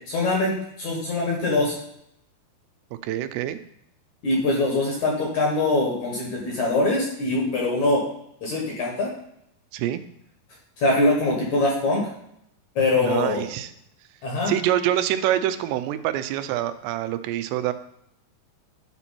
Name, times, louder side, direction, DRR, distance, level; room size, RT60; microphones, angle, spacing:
voice 1, 0.1-1.8 4.2-8.0 8.4-9.1 10.8-12.1 12.8-13.4 14.2-14.5, left 2 dB, 60° left, -2 dB, 2.2 m, -23 dB
voice 2, 3.0-3.6 9.7-10.0 13.0-13.7 14.5-17.7, right 12 dB, 90° right, 11 dB, 2.8 m, -25 dB
10.5 x 4.5 x 4.2 m, 0.73 s
omnidirectional pair, 4.8 m